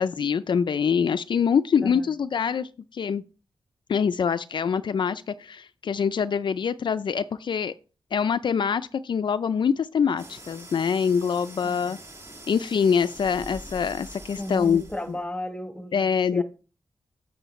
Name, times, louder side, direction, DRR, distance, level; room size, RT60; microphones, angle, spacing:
voice 1, 0.0-3.2 3.9-7.7 8.1-12.0 12.5-14.8 15.9-16.4, left 6 dB, 60° left, 0.4 m, -24 dB
sound 1, 10.2-15.2, right 1 dB, 30° right, 1.8 m, -44 dB
voice 2, 11.6-12.0 14.4-16.0 16.3-16.4, left 1 dB, 10° left, 1.3 m, -34 dB
8.9 x 7.7 x 3.1 m
cardioid pair, 75°, 9 cm